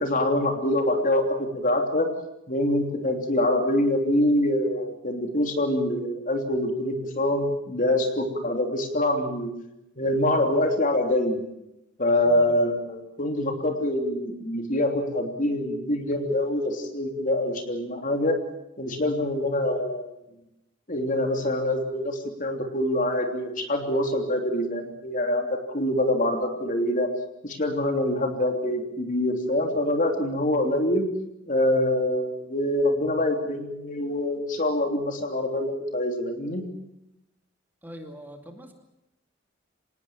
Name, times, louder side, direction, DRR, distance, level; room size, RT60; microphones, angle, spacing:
voice 1, 0.0-2.1 2.5-9.5 10.0-11.4 12.0-18.4 18.8-20.1 20.9-27.1 27.4-31.1 31.5-36.6, left 1 dB, 40° left, 4 dB, 3.2 m, -25 dB
voice 2, 37.8-38.7, equal, 10° right, 4 dB, 2.4 m, -43 dB
26.0 x 19.0 x 7.4 m, 0.87 s
head